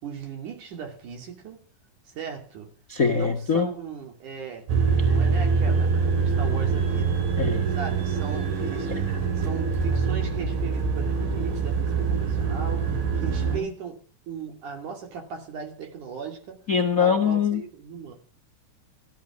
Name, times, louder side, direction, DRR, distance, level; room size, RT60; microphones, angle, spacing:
voice 1, 0.0-1.6 2.1-2.7 3.1-4.7 5.0-7.3 7.7-9.1 9.4-16.6 17.0-18.1, right 6 dB, 60° right, 4.2 m, -38 dB
voice 2, 2.9-3.7 7.4-7.7 9.1-9.2 12.9-13.0 13.5-13.6 16.7-17.6, left 6 dB, 80° left, 0.7 m, -23 dB
sound 1, 4.7-13.6, right 5 dB, 85° right, 3.9 m, -24 dB
15.0 x 11.5 x 6.3 m
omnidirectional pair, 4.1 m